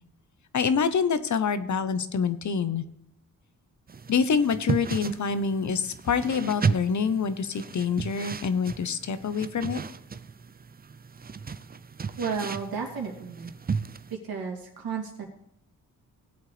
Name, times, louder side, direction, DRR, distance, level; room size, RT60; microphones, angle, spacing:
voice 1, 0.5-2.8 4.1-9.8, left 6 dB, 55° left, 12 dB, 1.0 m, -26 dB
sound 1, 3.9-14.1, right 5 dB, 25° right, 0.6 m, -34 dB
voice 2, 12.2-13.5 14.1-15.3, right 6 dB, 80° right, 0 dB, 3.0 m, -33 dB
18.0 x 8.1 x 3.4 m, 0.78 s
cardioid pair, 70°, 35 cm